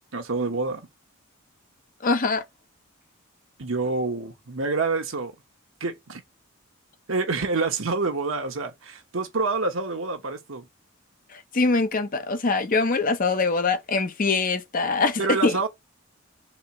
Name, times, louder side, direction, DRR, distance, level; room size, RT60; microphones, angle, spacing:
voice 1, 0.1-0.9 3.6-5.3 5.8-6.2 7.1-10.7 15.2-15.7, right 3 dB, 70° right, 1.1 m, -27 dB
voice 2, 2.0-2.4 11.3-15.6, left 3 dB, 40° left, 0.7 m, -23 dB
4.2 x 3.4 x 2.9 m
head